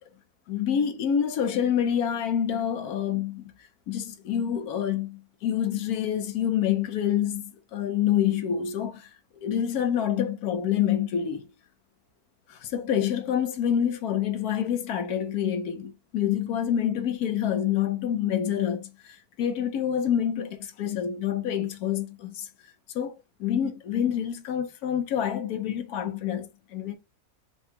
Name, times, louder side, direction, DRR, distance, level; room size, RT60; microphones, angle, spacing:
voice 1, 0.5-3.4 3.9-9.1 9.4-11.5 12.5-22.5 22.9-23.1 23.4-27.0, left 9 dB, 75° left, 1.2 m, -27 dB
4.8 x 2.2 x 4.2 m
omnidirectional pair, 1.6 m